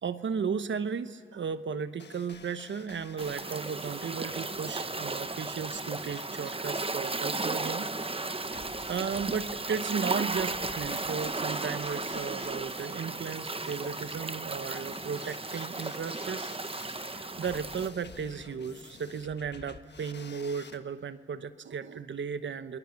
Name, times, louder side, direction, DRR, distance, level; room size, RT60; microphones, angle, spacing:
voice 1, 0.0-16.5 17.4-22.8, right 6 dB, 75° right, 12 dB, 1.0 m, -35 dB
sound 1, 2.0-20.8, left 5 dB, 65° left, 1.3 m, -51 dB
sound 2, 3.2-17.9, right 3 dB, 30° right, 1.1 m, -35 dB
29.0 x 21.0 x 7.1 m, 2.4 s
cardioid pair, 40°, 19 cm